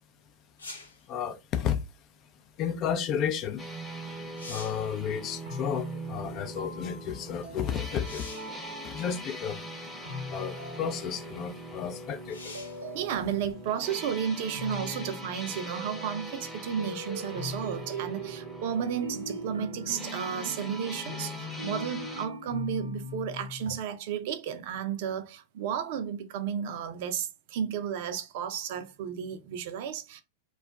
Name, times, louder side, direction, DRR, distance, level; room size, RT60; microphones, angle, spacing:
sound 1, 0.6-1.0 3.7-3.8 4.2-4.9 8.0-8.6 9.6-9.7 12.3-12.9 16.4-16.5, left 3 dB, 90° left, 0.6 m, -44 dB
voice 1, 1.1-1.8 2.6-3.7 4.5-8.3 8.8-9.7 10.3-12.6, left 8 dB, 40° left, 0.4 m, -32 dB
sound 2, 3.6-22.3, right 1 dB, 5° left, 0.8 m, -42 dB
sound 3, 5.5-9.4 10.1-11.5 12.5-13.7 14.5-16.5 16.8-23.7, left 1 dB, 85° right, 0.8 m, -41 dB
voice 2, 12.9-30.2, right 8 dB, 60° right, 0.5 m, -33 dB
2.3 x 2.1 x 3.5 m
hypercardioid pair, 100°, 0 cm